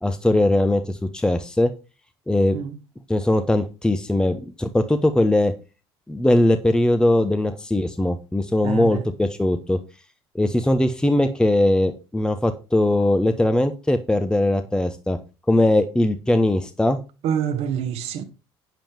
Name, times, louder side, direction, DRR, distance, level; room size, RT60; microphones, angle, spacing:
voice 1, 0.0-1.7 2.3-2.6 3.1-5.5 6.1-9.8 10.3-15.2 15.5-17.0, left 1 dB, 5° left, 0.9 m, -20 dB
voice 2, 8.6-9.0 17.2-18.2, right 8 dB, 50° right, 1.2 m, -26 dB
8.9 x 7.0 x 4.6 m
figure-of-eight pair, 60°, 14 cm